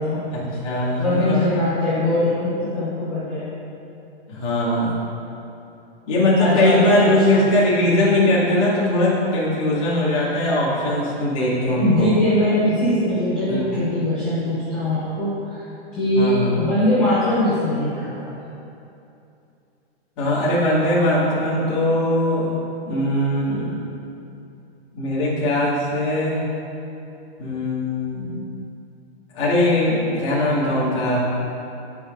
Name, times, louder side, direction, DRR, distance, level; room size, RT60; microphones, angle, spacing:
voice 1, 0.3-1.4 4.3-5.0 6.1-12.1 13.5-13.6 16.1-16.6 20.2-22.6 22.9-23.8 24.9-26.5 27.4-28.5 29.3-31.3, left 1 dB, 25° left, -9 dB, 2.1 m, -20 dB
voice 2, 1.0-3.5 6.4-7.5 11.7-15.7 16.0-18.3, left 1 dB, 5° left, -15 dB, 0.5 m, -21 dB
16.5 x 5.9 x 2.6 m, 2.8 s
hypercardioid pair, 180°, 34 cm